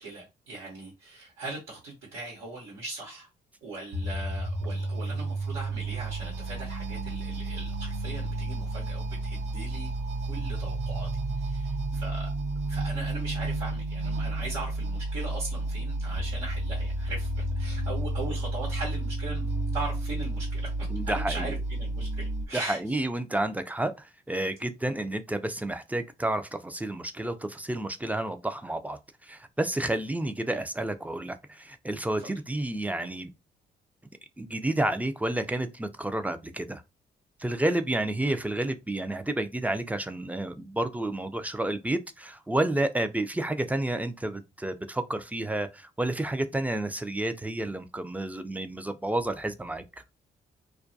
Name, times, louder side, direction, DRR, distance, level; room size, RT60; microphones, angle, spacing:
voice 1, 0.0-3.3 3.6-9.9 10.2-11.1 11.4-12.3 12.7-23.0 30.5-30.6 32.2-32.3, right 2 dB, 90° right, 1.0 m, -39 dB
sound 1, 3.9-22.5, right 2 dB, 60° right, 0.6 m, -31 dB
voice 2, 20.9-21.5 22.5-33.3 34.4-36.8 37.4-49.8, right 1 dB, 10° right, 0.4 m, -30 dB
2.3 x 2.2 x 2.6 m
supercardioid pair, 50°, 20 cm